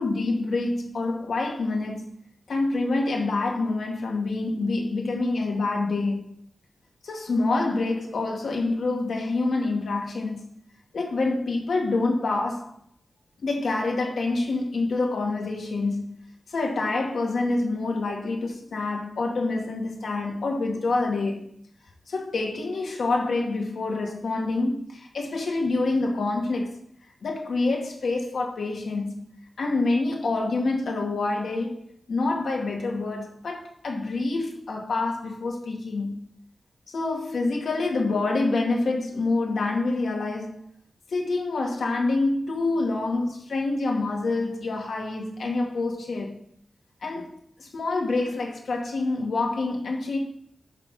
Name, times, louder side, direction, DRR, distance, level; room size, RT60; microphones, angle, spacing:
voice 1, 0.0-2.1 2.5-6.3 7.0-10.4 10.9-12.7 13.4-16.2 16.5-21.4 22.1-26.8 27.2-29.3 29.6-36.2 36.9-40.6 41.1-46.4 47.0-47.3 47.6-50.2, left 3 dB, 90° left, 2.0 m, -27 dB
6.5 x 5.6 x 6.4 m
wide cardioid pair, 145°, 0 cm